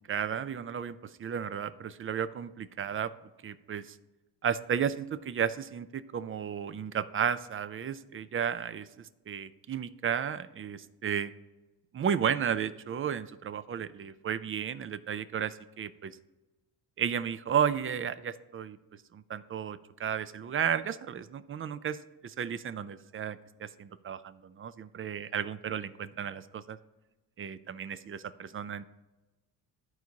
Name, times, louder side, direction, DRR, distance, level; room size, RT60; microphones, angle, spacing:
voice 1, 0.1-3.1 3.4-4.0 4.4-11.3 11.9-16.2 17.0-18.8 19.1-22.0 22.2-26.8 27.4-28.9, right 8 dB, 30° right, 14 dB, 0.4 m, -33 dB
14.0 x 4.6 x 2.8 m, 1.1 s
cardioid pair, 95°, 44 cm